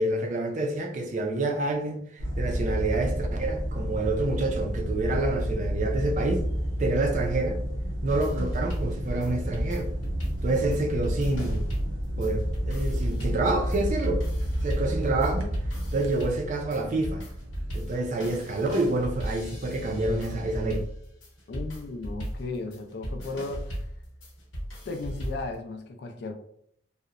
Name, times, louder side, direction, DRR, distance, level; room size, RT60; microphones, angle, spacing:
voice 1, 0.0-6.4 6.8-7.6 8.0-9.9 10.4-11.6 12.2-14.2 14.6-15.5 15.9-17.2 17.7-20.8, right 2 dB, 40° right, 0.4 m, -28 dB
sound 1, 2.2-20.7, equal, 85° right, 0.6 m, -31 dB
sound 2, 8.1-25.6, equal, 80° left, 0.9 m, -37 dB
voice 2, 21.5-23.9 24.9-26.3, left 3 dB, 60° left, 0.4 m, -35 dB
2.8 x 2.0 x 2.4 m
head